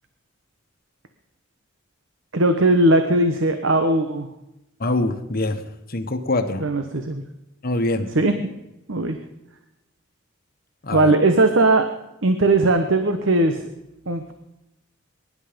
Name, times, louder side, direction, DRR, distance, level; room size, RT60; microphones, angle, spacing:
voice 1, 2.3-4.3 6.6-7.2 8.1-8.5 8.9-9.2 10.9-11.9 12.2-13.6 14.1-14.3, right 2 dB, 70° right, 7 dB, 1.2 m, -19 dB
voice 2, 4.8-5.6 5.9-6.6 7.6-8.1 10.8-11.1, left 2 dB, 45° left, 8 dB, 1.2 m, -24 dB
22.0 x 11.0 x 5.2 m, 0.90 s
head